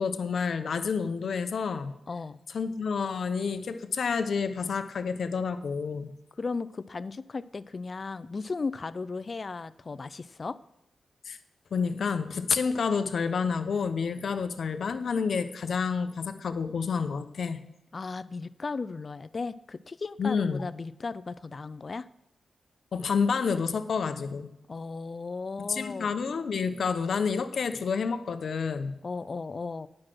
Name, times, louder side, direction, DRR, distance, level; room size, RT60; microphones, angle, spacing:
voice 1, 0.0-1.9 2.5-6.1 11.3-11.4 11.7-17.6 20.2-20.6 22.9-24.5 25.6-29.0, left 5 dB, 70° left, 9 dB, 0.8 m, -29 dB
voice 2, 2.1-2.4 6.4-10.6 17.9-22.1 24.7-26.1 29.0-29.9, left 4 dB, 45° left, 16 dB, 0.4 m, -36 dB
9.6 x 6.4 x 6.1 m, 0.87 s
cardioid pair, 70°, 0 cm